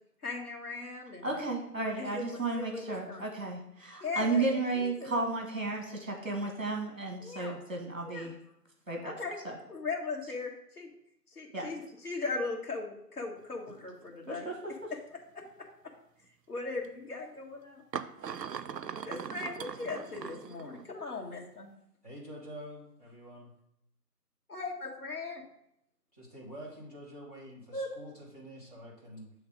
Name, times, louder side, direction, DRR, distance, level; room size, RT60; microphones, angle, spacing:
voice 1, 0.2-1.3 2.0-3.2 4.0-5.2 7.2-7.6 8.0-8.3 9.0-9.4 9.7-10.9 11.3-14.5 14.9-15.0 16.5-17.8 19.0-21.7 24.5-25.4 27.7-27.9, left 3 dB, 65° left, -1 dB, 1.3 m, -38 dB
voice 2, 1.2-8.3 8.9-9.1 9.4-9.5 11.5-11.7 14.3-14.6 14.8-14.9, right 3 dB, 55° right, 2 dB, 1.2 m, -33 dB
sound 1, 13.4-13.5 14.0-14.3 15.4-15.5 16.8-16.9 17.9-21.0, right 7 dB, 85° right, 0.6 m, -40 dB
voice 3, 22.0-23.5 26.1-29.3, equal, 25° left, -6 dB, 1.3 m, -47 dB
7.2 x 3.2 x 4.8 m, 0.74 s
figure-of-eight pair, 165°, 49 cm